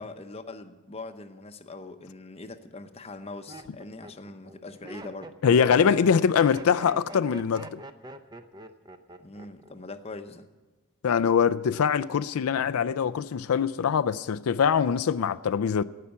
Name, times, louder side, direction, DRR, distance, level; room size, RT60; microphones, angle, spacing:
voice 1, 0.0-5.3 5.7-5.9 9.2-10.5, left 2 dB, 30° left, 0.7 m, -42 dB
Laughter, 2.1-2.5 3.1-9.7 10.0-10.5, right 2 dB, 20° right, 0.6 m, -44 dB
voice 2, 5.4-7.8 11.0-15.8, left 7 dB, 90° left, 0.4 m, -23 dB
15.5 x 5.7 x 9.5 m
head